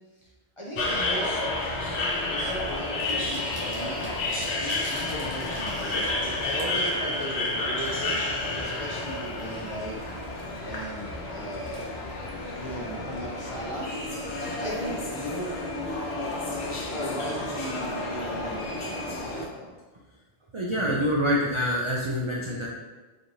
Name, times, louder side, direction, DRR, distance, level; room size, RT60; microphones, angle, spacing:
voice 1, 0.6-1.4 2.3-4.0 4.5-8.2 8.5-10.2 10.6-13.9 14.6-16.0 16.9-19.7, equal, 35° left, -5 dB, 0.7 m, -37 dB
sound 1, 0.8-19.4, left 2 dB, 75° left, 1.0 m, -31 dB
sound 2, 2.7-9.5, right 2 dB, 70° right, 1.1 m, -48 dB
voice 2, 20.5-22.7, equal, 50° right, -4 dB, 0.3 m, -26 dB
4.1 x 3.1 x 2.6 m, 1.2 s
omnidirectional pair, 1.1 m